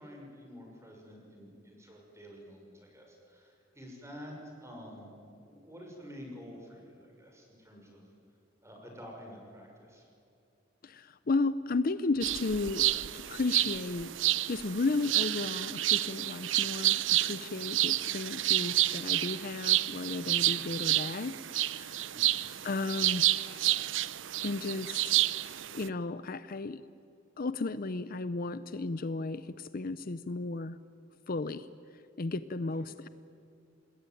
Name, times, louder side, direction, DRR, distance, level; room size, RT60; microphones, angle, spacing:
voice 1, 0.0-4.3 4.6-5.1 5.4-8.0 8.6-10.1 18.1-18.2 22.1-22.4 32.8-32.9, equal, 15° right, 0 dB, 6.2 m, -49 dB
voice 2, 10.8-14.1 14.5-22.1 22.6-23.8 24.4-25.2 25.7-26.8 27.4-30.8 31.3-31.7 32.2-33.1, left 3 dB, 50° left, 14 dB, 0.6 m, -34 dB
sound 1, 12.2-25.9, right 15 dB, 70° right, 0.6 m, -30 dB
26.0 x 20.5 x 9.3 m, 2.5 s
head